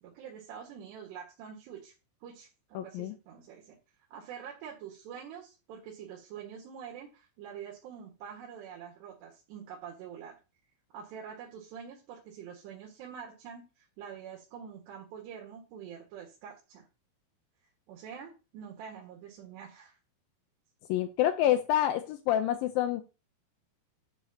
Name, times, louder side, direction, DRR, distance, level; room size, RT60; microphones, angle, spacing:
voice 1, 0.0-1.9 2.2-3.8 4.1-10.4 10.9-16.9 17.9-20.0, right 8 dB, 80° right, -1 dB, 3.8 m, -46 dB
voice 2, 2.8-3.1 20.9-23.0, left 12 dB, 80° left, 8 dB, 2.2 m, -27 dB
12.0 x 7.6 x 2.8 m, 0.30 s
omnidirectional pair, 4.8 m